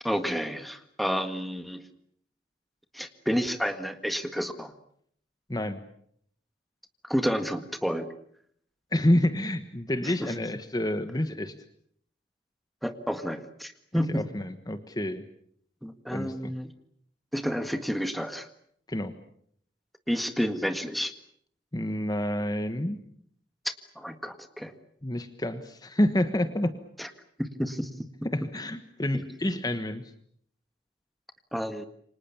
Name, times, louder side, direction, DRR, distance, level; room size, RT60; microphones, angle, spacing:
voice 1, 0.0-1.9 2.9-4.7 7.0-8.1 10.0-10.3 12.8-14.2 15.8-16.7 17.3-18.5 20.1-21.1 23.7-24.7 27.0-27.1 27.4-27.9 31.5-31.8, equal, ahead, 8 dB, 1.7 m, -30 dB
voice 2, 5.5-5.8 8.9-11.5 14.1-15.2 16.1-16.5 18.9-19.1 21.7-23.0 25.0-26.7 28.3-30.0, left 1 dB, 20° left, 9 dB, 1.4 m, -28 dB
28.5 x 25.5 x 7.1 m, 0.67 s
head